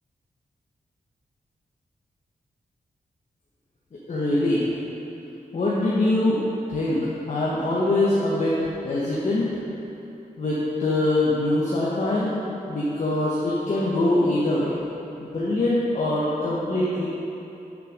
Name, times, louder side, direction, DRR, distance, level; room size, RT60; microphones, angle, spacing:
voice 1, 4.1-4.6 5.5-6.4 6.7-7.0 7.3-8.5 8.8-9.5 10.4-12.4 12.7-14.7 15.2-17.1, left 2 dB, 50° left, -7 dB, 1.2 m, -23 dB
6.7 x 6.2 x 6.5 m, 2.9 s
wide cardioid pair, 150°, 15 cm